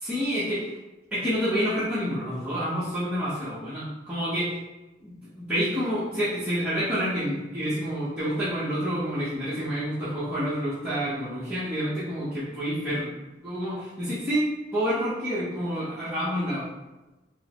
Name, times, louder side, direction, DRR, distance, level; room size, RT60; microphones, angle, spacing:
voice 1, 0.0-0.8 1.1-4.5 5.0-13.1 13.4-14.5 14.7-16.7, equal, 5° right, -14 dB, 0.9 m, -28 dB
3.6 x 2.0 x 4.3 m, 1.1 s
head